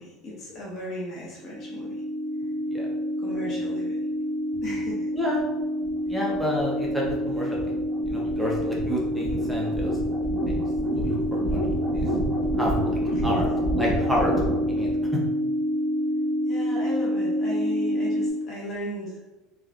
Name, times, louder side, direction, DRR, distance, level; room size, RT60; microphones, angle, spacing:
voice 1, 0.0-2.0 3.2-4.0 4.5-5.1 13.1-13.2 16.5-19.2, left 1 dB, 40° left, -5 dB, 0.7 m, -36 dB
sound 1, 1.4-18.3, equal, 45° right, 1.3 m, -27 dB
voice 2, 6.0-7.6 8.1-9.9 10.5-10.6 11.0-11.7 11.9-12.1 12.6-13.5 13.8-14.3 14.7-15.2, equal, 5° right, -4 dB, 0.5 m, -29 dB
3.2 x 2.3 x 2.3 m, 1.1 s
supercardioid pair, 130°, 0 cm